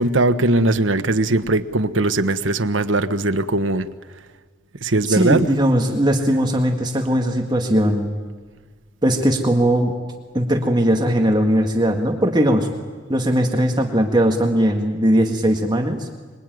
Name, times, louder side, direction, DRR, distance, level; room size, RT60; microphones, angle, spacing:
voice 1, 0.0-3.9 4.8-5.5, right 2 dB, 85° right, 9 dB, 1.2 m, -19 dB
voice 2, 5.1-8.1 9.0-10.0 10.3-12.7 13.1-16.1, equal, 20° right, 3 dB, 1.9 m, -19 dB
25.0 x 22.5 x 9.4 m, 1.5 s
head